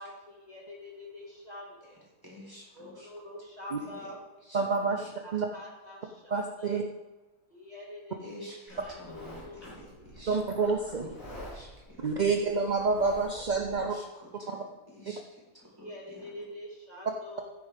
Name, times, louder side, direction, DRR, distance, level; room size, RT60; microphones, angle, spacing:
voice 1, 0.0-2.0 2.7-4.2 5.2-6.8 7.5-9.9 15.8-17.5, left 1 dB, 25° left, -4 dB, 2.1 m, -46 dB
voice 2, 2.2-3.1 3.8-4.1 4.4-5.1 8.2-10.4 10.9-12.2 13.7-16.3, equal, 15° right, -5 dB, 4.0 m, -50 dB
voice 3, 4.5-5.0 5.3-5.5 6.3-6.8 10.3-11.1 12.0-13.9 14.5-14.6, right 4 dB, 45° right, 3 dB, 0.6 m, -28 dB
Livestock farm animals working animals, 8.7-13.7, equal, 60° left, 4.8 m, -48 dB
13.5 x 9.8 x 3.6 m, 1.1 s
omnidirectional pair, 1.7 m